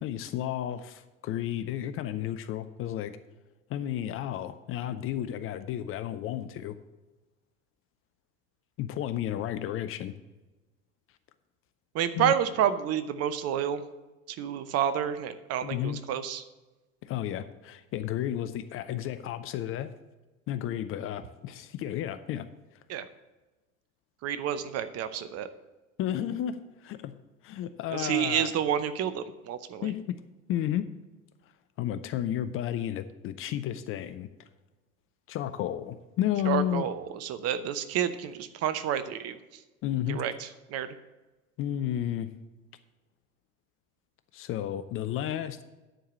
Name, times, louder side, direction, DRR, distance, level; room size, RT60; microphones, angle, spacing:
voice 1, 0.0-3.1 3.7-6.8 8.8-10.1 12.2-12.4 15.6-16.0 17.0-19.9 20.5-22.5 26.0-27.2 27.4-28.5 29.8-30.2 30.5-30.9 31.8-34.5 35.3-36.9 39.8-40.2 41.6-42.3 44.3-45.6, left 11 dB, 30° left, 11 dB, 0.5 m, -32 dB
voice 2, 11.9-13.8 14.4-16.4 22.9-23.0 24.2-25.5 27.9-29.9 36.5-39.4 40.1-40.3 40.7-40.9, right 9 dB, 35° right, 12 dB, 0.8 m, -29 dB
10.0 x 4.8 x 7.4 m, 1.1 s
figure-of-eight pair, 80°, 41 cm